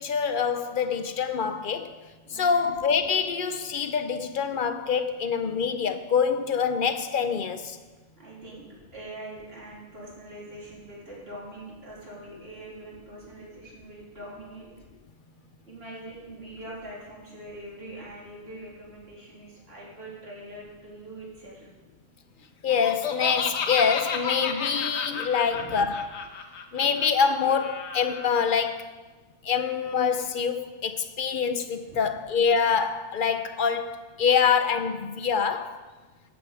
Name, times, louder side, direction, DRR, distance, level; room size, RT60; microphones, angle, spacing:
voice 1, 0.0-1.9 2.3-7.8 22.6-26.3 26.7-28.9 29.4-35.8, left 6 dB, 50° left, 0.8 m, -25 dB
voice 2, 2.2-2.7 8.2-8.7 8.9-14.7 15.7-21.7 25.5-25.9 31.8-32.0, right 1 dB, 60° right, 3.0 m, -43 dB
Laughter, 22.7-28.3, left 5 dB, 70° left, 1.1 m, -32 dB
12.5 x 8.3 x 4.8 m
omnidirectional pair, 1.2 m